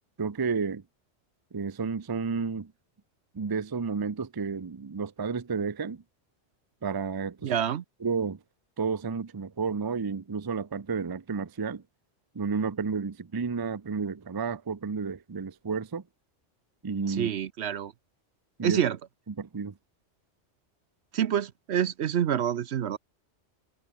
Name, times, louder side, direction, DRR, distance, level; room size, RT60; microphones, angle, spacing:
voice 1, 0.2-0.8 1.5-2.7 3.3-6.0 6.8-7.5 8.0-8.4 8.8-11.8 12.3-16.0 16.8-17.3 18.6-18.8 19.3-19.7, right 5 dB, 25° right, 0.6 m, -31 dB
voice 2, 7.4-7.8 17.1-17.9 18.6-19.0 21.1-23.0, right 9 dB, 65° right, 1.0 m, -27 dB
omnidirectional pair, 1.2 m